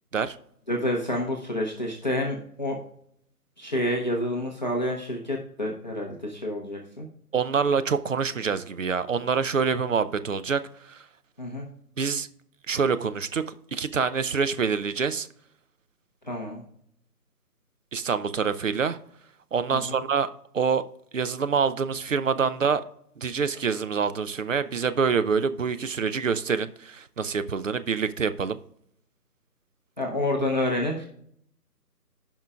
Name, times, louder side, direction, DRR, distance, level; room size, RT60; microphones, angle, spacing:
voice 1, 0.7-2.8 3.6-7.1 11.4-11.7 16.3-16.6 19.7-20.0 30.0-31.1, left 1 dB, 30° left, -1 dB, 0.8 m, -28 dB
voice 2, 7.3-11.1 12.0-12.3 12.7-15.3 17.9-19.0 19.5-20.3 20.5-20.8 21.1-22.8 23.2-28.6, right 5 dB, 55° right, 12 dB, 0.6 m, -26 dB
16.0 x 5.5 x 2.4 m, 0.68 s
figure-of-eight pair, 150°, 48 cm